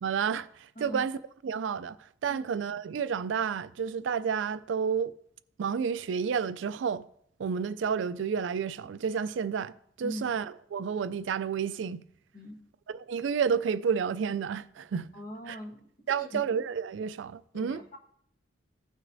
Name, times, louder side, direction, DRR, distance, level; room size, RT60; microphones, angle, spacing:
voice 1, 0.0-5.1 5.6-7.1 7.4-9.7 10.0-12.0 12.9-15.1 15.5-15.6 16.1-17.8, right 6 dB, 75° right, 0.4 m, -30 dB
voice 2, 15.1-16.5 17.5-18.0, equal, 50° left, 1.5 m, -41 dB
15.5 x 6.2 x 2.6 m
head